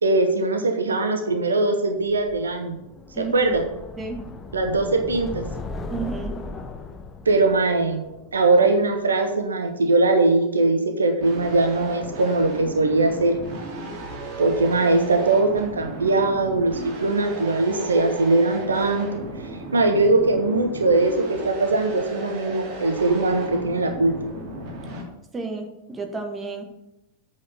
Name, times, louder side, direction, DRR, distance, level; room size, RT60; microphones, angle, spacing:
voice 1, 0.0-2.8 3.2-3.6 4.5-5.5 7.2-8.0 8.3-13.4 14.4-19.2 19.7-24.1, right 2 dB, 75° right, 5 dB, 1.1 m, -21 dB
sound 1, 2.0-9.1, left 3 dB, 20° left, 1.0 m, -37 dB
voice 2, 5.9-6.4 25.3-26.6, right 4 dB, 15° right, 3 dB, 1.7 m, -31 dB
sound 2, 11.2-25.0, right 2 dB, 40° right, 2.8 m, -35 dB
8.3 x 5.0 x 6.7 m, 0.92 s
figure-of-eight pair, 90°, 0 cm